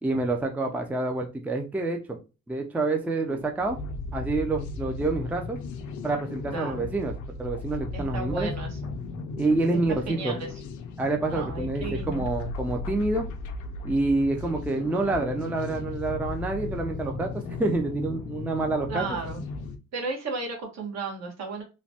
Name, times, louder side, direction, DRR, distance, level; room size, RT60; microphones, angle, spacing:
voice 1, 0.0-2.2 2.5-3.8 4.1-5.6 6.0-7.1 7.4-8.5 9.4-10.4 11.0-13.3 13.8-17.3 17.6-19.0, right 2 dB, 5° right, 3 dB, 0.4 m, -27 dB
sound 1, 3.3-19.8, left 3 dB, 75° left, 0.6 m, -36 dB
voice 2, 6.5-6.9 7.9-8.9 9.7-10.5 11.3-12.2 18.9-19.4 19.9-21.6, right 4 dB, 60° right, 0 dB, 1.3 m, -34 dB
3.1 x 2.2 x 2.8 m, 0.30 s
cardioid pair, 90°, 30 cm